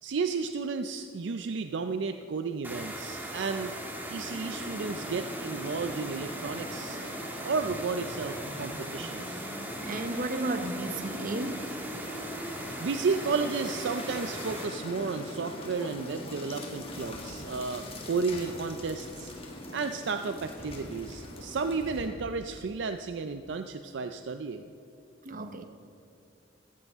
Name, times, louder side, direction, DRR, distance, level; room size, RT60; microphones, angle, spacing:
voice 1, 0.0-3.7 4.1-7.0 7.4-9.5 12.8-19.3 19.7-24.6, right 4 dB, 65° right, 8 dB, 0.4 m, -33 dB
sound 1, 2.6-14.7, right 1 dB, 10° right, 1.4 m, -39 dB
sound 2, 4.1-22.1, left 1 dB, 30° left, 1.7 m, -42 dB
sound 3, 7.6-12.6, equal, 10° left, 2.4 m, -47 dB
voice 2, 9.8-11.7 25.2-25.7, right 2 dB, 45° right, 8 dB, 0.9 m, -33 dB
15.0 x 13.5 x 3.6 m, 2.6 s
head